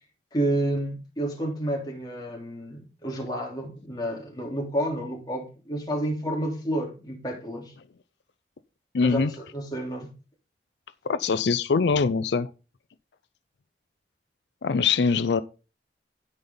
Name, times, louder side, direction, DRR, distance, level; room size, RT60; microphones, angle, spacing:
voice 1, 0.3-7.7 9.0-10.1, right 1 dB, 25° left, 3.2 m, -30 dB
voice 2, 8.9-9.3 11.0-12.5 14.6-15.4, left 5 dB, 85° left, 0.5 m, -23 dB
16.5 x 5.4 x 3.9 m
head